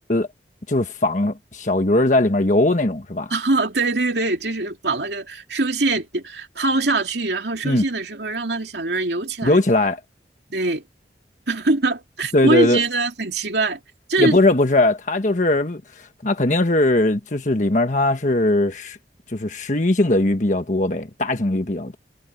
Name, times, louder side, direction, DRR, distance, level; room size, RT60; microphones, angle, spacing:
voice 1, 0.7-3.3 7.6-7.8 9.4-10.0 12.3-12.8 14.2-19.0 19.3-22.0, left 2 dB, 45° left, 1.4 m, -19 dB
voice 2, 3.3-9.6 10.5-10.8 11.5-13.8 14.1-14.4, right 2 dB, 75° right, 2.7 m, -23 dB
head